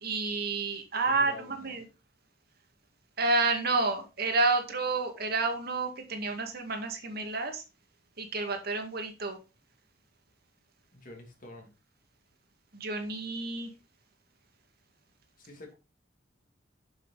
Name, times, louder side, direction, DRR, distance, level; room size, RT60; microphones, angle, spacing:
voice 1, 0.0-1.8 3.2-7.6 8.2-9.4 12.7-13.7, right 3 dB, 55° right, 2.0 m, -30 dB
voice 2, 1.1-1.8 10.9-11.7 15.4-15.7, left 1 dB, 45° left, 2.8 m, -48 dB
7.6 x 7.3 x 4.0 m
head